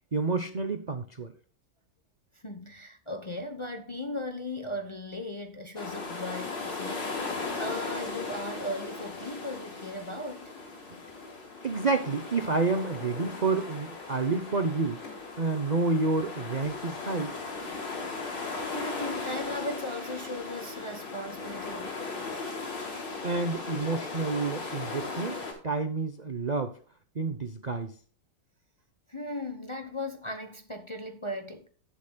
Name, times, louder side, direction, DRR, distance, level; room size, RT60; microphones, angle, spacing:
voice 1, 0.1-1.3 10.9-11.0 11.6-15.0 15.4-17.3 22.8-25.4 25.6-26.8 27.1-27.9, right 3 dB, 50° right, 0.5 m, -29 dB
voice 2, 2.4-10.5 18.7-22.0 29.1-31.7, left 1 dB, 25° left, 0.7 m, -37 dB
sound 1, 5.8-25.5, left 3 dB, 85° left, 4.2 m, -37 dB
18.0 x 7.2 x 2.3 m
omnidirectional pair, 2.0 m